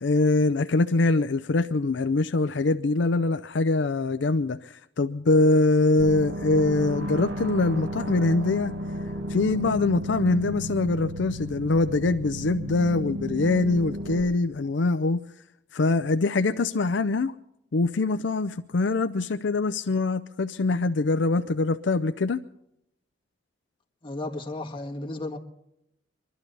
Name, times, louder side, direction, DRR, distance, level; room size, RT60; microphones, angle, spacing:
voice 1, 0.0-8.7 9.3-15.2 15.7-17.3 17.7-22.4, left 3 dB, 70° left, 10 dB, 0.5 m, -23 dB
sound 1, 6.0-14.2, equal, 80° right, 1.8 m, -33 dB
voice 2, 24.0-25.4, left 2 dB, 25° left, 2 dB, 1.9 m, -34 dB
24.0 x 12.0 x 4.1 m, 0.78 s
head